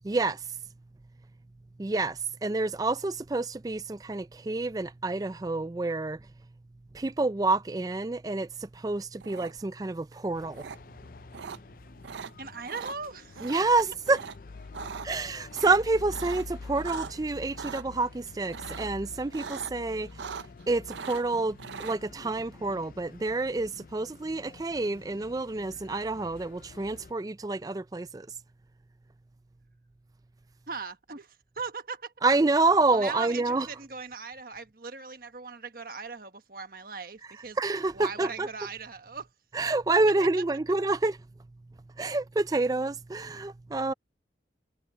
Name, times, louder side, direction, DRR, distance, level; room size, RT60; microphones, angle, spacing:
voice 1, 0.0-0.4 1.8-6.2 6.9-10.6 13.4-14.2 15.0-20.1 20.7-28.3 32.2-33.7 37.6-38.5 39.5-41.2 42.0-43.9, right 3 dB, 20° right, 0.4 m, -28 dB
sound 1, 9.2-9.8 10.6-10.8 11.3-11.6 12.0-12.3 12.7-13.0 13.3-13.7 14.1-14.4 14.6-15.1 15.5-17.1 17.5-17.8 18.5-19.0 19.3-19.7 20.0-20.6 20.9-22.0, right 6 dB, 80° right, 0.5 m, -40 dB
sound 2, 10.3-27.1, left 4 dB, 50° left, 0.4 m, -47 dB
voice 2, 12.4-13.5 14.8-14.9 30.7-32.1 32.9-37.6 37.9-39.3, right 4 dB, 55° right, 1.3 m, -39 dB
head